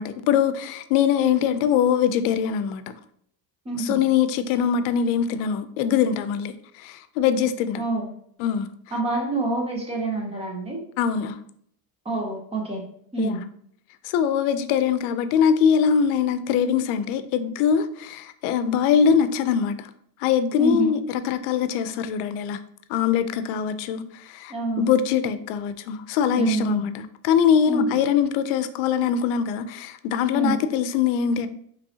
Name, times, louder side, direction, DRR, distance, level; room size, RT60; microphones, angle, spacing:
voice 1, 0.0-2.8 3.8-7.8 8.4-8.7 11.0-11.4 13.2-13.4 14.0-19.9 20.2-22.6 22.9-31.5, left 8 dB, 80° left, 0.6 m, -22 dB
voice 2, 3.7-4.0 7.8-8.1 8.9-10.8 12.0-12.8 13.1-13.4 20.6-20.9 24.5-24.9 26.4-26.8 27.6-28.0 30.3-30.6, right 3 dB, 15° right, 0.6 m, -27 dB
5.2 x 3.1 x 2.7 m
cardioid pair, 165°, 46 cm